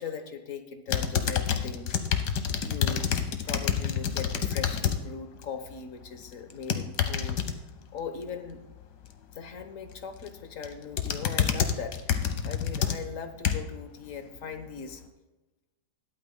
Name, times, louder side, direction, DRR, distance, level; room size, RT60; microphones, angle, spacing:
voice 1, 0.0-1.9 2.6-7.6 7.9-8.6 9.3-15.0, left 6 dB, 55° left, 8 dB, 1.3 m, -40 dB
sound 1, 0.9-5.0 5.4-5.7 6.5-7.5 9.9-10.3 10.6-13.8 14.4-14.5, left 8 dB, 80° left, 1.5 m, -28 dB
21.0 x 8.5 x 2.2 m, 1.1 s
omnidirectional pair, 1.8 m